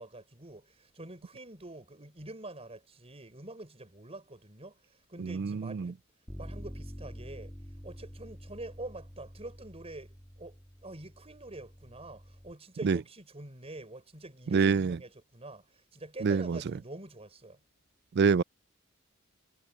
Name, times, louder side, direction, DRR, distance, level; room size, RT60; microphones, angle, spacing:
voice 1, 0.0-6.0 6.4-7.5 7.8-17.6, right 2 dB, 30° right, 5.3 m, -46 dB
voice 2, 5.2-5.9 12.8-13.0 14.5-15.0 16.2-16.6 18.1-18.4, right 5 dB, 55° right, 0.4 m, -26 dB
Bass guitar, 6.3-12.5, equal, 5° left, 2.4 m, -47 dB
head